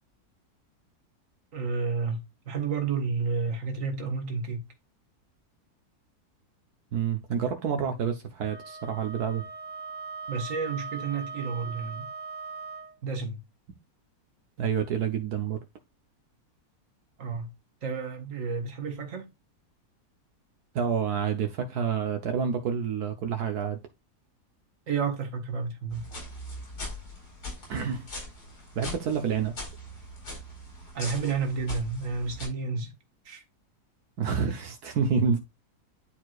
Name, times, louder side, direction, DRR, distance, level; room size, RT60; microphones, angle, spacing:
voice 1, 1.5-2.2 2.5-4.6 10.3-12.1 13.0-13.4 17.2-17.5 17.8-19.3 24.9-26.1 30.9-32.9 33.3-33.4, right 5 dB, 55° right, 1.8 m, -31 dB
voice 2, 6.9-9.4 14.6-15.6 20.7-23.8 27.7-28.1 28.7-29.5 34.2-35.4, right 7 dB, 75° right, 1.4 m, -28 dB
Wind instrument woodwind instrument, 8.4-13.0, right 4 dB, 20° left, 0.7 m, -40 dB
sound 1, 25.9-32.5, left 1 dB, 85° left, 4.7 m, -41 dB
10.5 x 4.6 x 2.4 m
omnidirectional pair, 1.7 m